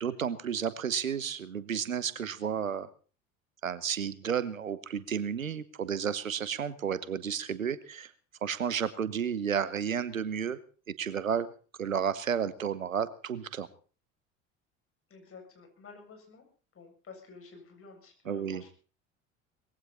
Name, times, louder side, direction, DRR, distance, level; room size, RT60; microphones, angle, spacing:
voice 1, 0.0-2.9 3.6-8.1 8.4-10.6 11.0-11.5 11.8-13.7 18.2-18.6, right 7 dB, 85° right, 16 dB, 1.0 m, -32 dB
voice 2, 15.1-16.4 16.7-18.7, left 4 dB, 35° left, 4 dB, 7.7 m, -51 dB
20.5 x 16.0 x 4.3 m, 0.39 s
figure-of-eight pair, 65°, 39 cm